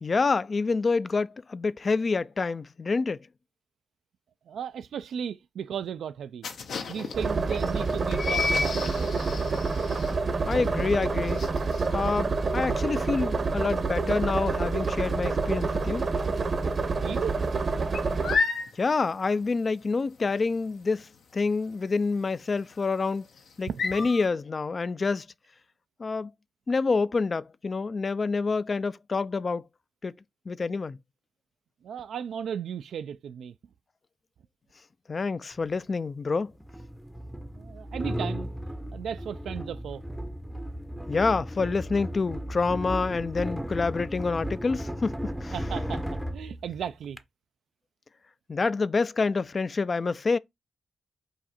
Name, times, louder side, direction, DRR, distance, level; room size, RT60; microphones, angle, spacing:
voice 1, 0.0-3.2 10.5-11.4 11.9-16.0 18.7-23.3 23.6-25.3 26.0-26.3 26.7-29.6 30.0-30.1 30.5-31.0 35.1-36.5 41.1-45.5 48.5-50.4, left 4 dB, 40° left, 0.3 m, -27 dB
voice 2, 4.5-6.5 6.9-9.3 17.0-17.4 23.7-23.8 31.8-33.5 37.6-38.5 38.9-40.0 45.5-46.1 46.3-47.2, right 8 dB, 80° right, 0.3 m, -35 dB
sound 1, 6.4-15.9 16.2-16.6 16.8-24.3, left 4 dB, 75° left, 0.8 m, -33 dB
sound 2, 7.1-18.4, right 4 dB, 50° right, 0.8 m, -27 dB
sound 3, 35.5-35.6 36.6-47.2, equal, ahead, 0.6 m, -35 dB
4.8 x 2.6 x 4.2 m
cardioid pair, 80°, 0 cm